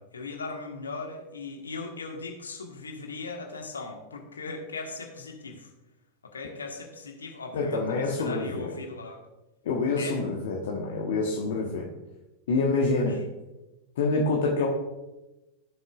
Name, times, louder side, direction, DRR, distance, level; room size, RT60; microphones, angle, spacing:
voice 1, 0.0-5.7 6.2-9.2 10.0-10.2 12.9-13.1, left 3 dB, 75° left, 3 dB, 1.5 m, -39 dB
voice 2, 7.5-8.7 9.6-11.9 12.5-13.2 14.0-14.7, left 3 dB, 55° left, -1 dB, 1.3 m, -26 dB
15.5 x 6.8 x 2.4 m, 1.0 s
figure-of-eight pair, 90°, 0 cm